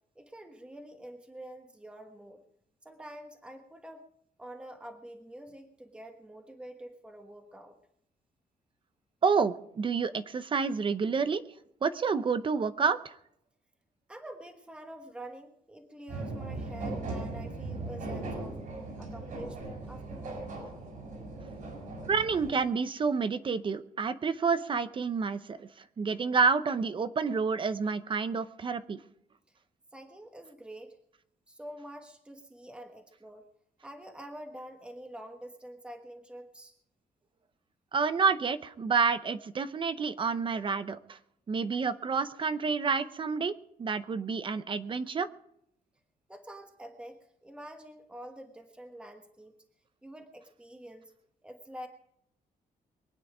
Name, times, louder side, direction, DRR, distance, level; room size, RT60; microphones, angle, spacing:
voice 1, 0.1-2.4 2.8-4.0 4.4-7.8 14.1-18.6 19.0-20.5 29.5-29.6 29.9-31.0 31.5-33.5 33.8-36.7 46.3-49.6 50.0-51.1 51.4-51.9, right 1 dB, 5° right, 4 dB, 1.3 m, -47 dB
voice 2, 9.2-11.4 11.8-13.2 22.0-29.0 37.9-41.2 41.5-43.5 43.8-45.3, right 5 dB, 35° right, 12 dB, 0.7 m, -29 dB
sound 1, 16.1-22.5, right 2 dB, 60° right, 6.6 m, -39 dB
23.5 x 9.6 x 5.0 m, 0.74 s
wide cardioid pair, 160°, 15 cm